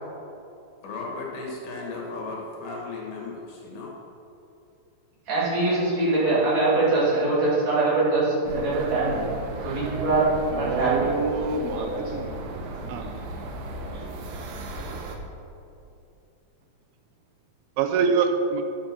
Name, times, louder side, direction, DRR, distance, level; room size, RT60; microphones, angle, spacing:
voice 1, 0.8-3.9, left 3 dB, 60° left, -2 dB, 3.1 m, -35 dB
voice 2, 5.3-9.3 9.6-10.3 10.6-11.1 11.9-12.0, right 2 dB, 50° right, -7 dB, 3.9 m, -23 dB
sound 1, 8.5-15.2, right 3 dB, 70° right, 2.5 m, -33 dB
voice 3, 10.5-12.4 12.7-13.1 17.8-18.6, right 5 dB, 85° right, 6 dB, 2.7 m, -26 dB
10.5 x 7.9 x 6.0 m, 2.7 s
omnidirectional pair, 4.3 m